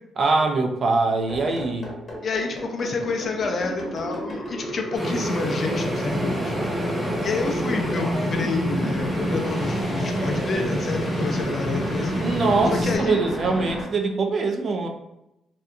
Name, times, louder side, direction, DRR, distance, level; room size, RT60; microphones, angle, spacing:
voice 1, 0.2-1.9 12.2-14.9, right 3 dB, 50° right, 4 dB, 0.4 m, -23 dB
sound 1, 1.3-13.8, equal, 30° left, 1.0 m, -33 dB
voice 2, 2.2-6.6 7.2-12.2 12.7-13.2, left 4 dB, 50° left, 3 dB, 0.4 m, -29 dB
sound 2, 4.9-13.0, right 1 dB, 5° right, 0.7 m, -27 dB
2.7 x 2.2 x 2.4 m, 0.88 s
cardioid pair, 90°, 0 cm